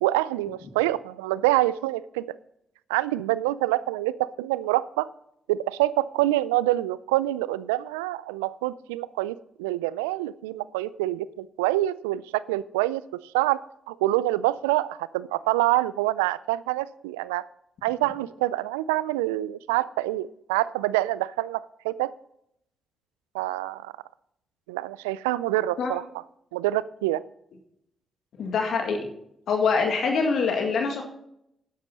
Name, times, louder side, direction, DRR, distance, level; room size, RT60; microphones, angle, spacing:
voice 1, 0.0-2.2 2.9-5.1 5.5-13.0 13.3-13.6 13.9-17.5 17.8-22.1 23.3-23.9 24.7-26.0 26.5-27.2, right 16 dB, 85° right, 18 dB, 0.4 m, -26 dB
voice 2, 28.4-29.0 29.5-31.0, left 5 dB, 65° left, 4 dB, 1.9 m, -24 dB
12.0 x 10.5 x 4.1 m, 0.75 s
hypercardioid pair, 40°, 0 cm